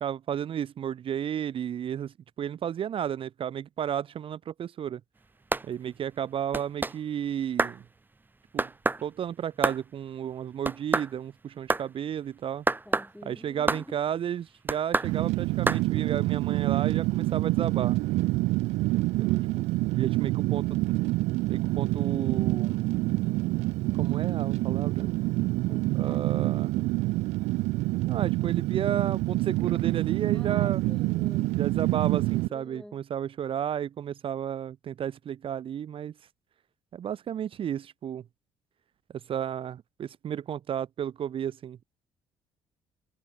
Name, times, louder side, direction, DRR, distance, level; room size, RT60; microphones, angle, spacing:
voice 1, 0.0-5.0 5.6-7.8 8.5-8.7 9.0-12.6 13.2-18.0 19.2-19.7 19.9-20.8 21.5-22.8 23.9-25.1 25.9-26.9 28.1-30.8 31.5-36.1 36.9-38.2 39.3-41.8, right 9 dB, 50° right, 0.8 m, -33 dB
sound 1, 5.5-5.7 6.5-7.0 7.6-7.8 8.6-9.0 9.6-9.8 10.6-11.1 11.7-11.9 12.7-13.1 13.7-13.9 14.7-15.1 15.7-15.8, right 3 dB, 15° right, 0.7 m, -26 dB
voice 2, 12.9-14.0 19.4-19.6 25.7-26.5 30.3-31.5 32.5-33.0, left 1 dB, 5° left, 1.9 m, -47 dB
Fire, 15.0-32.5, right 20 dB, 65° right, 0.5 m, -27 dB
hypercardioid pair, 50°, 12 cm